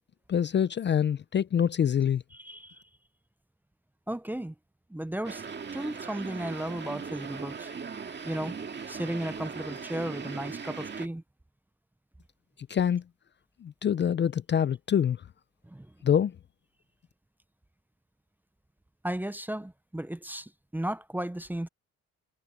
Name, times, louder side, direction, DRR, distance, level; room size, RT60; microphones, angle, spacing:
voice 1, 0.3-2.2 12.7-13.0 13.6-15.2 16.0-16.3, left 8 dB, 40° left, 0.5 m, -25 dB
voice 2, 2.3-2.8 4.1-4.5 4.9-5.4 5.7-7.7 8.2-8.5 8.9-11.2 15.6-15.9 19.0-21.7, right 1 dB, 5° right, 0.6 m, -35 dB
sound 1, 5.2-11.1, right 5 dB, 35° right, 2.1 m, -39 dB
cardioid pair, 90°, 30 cm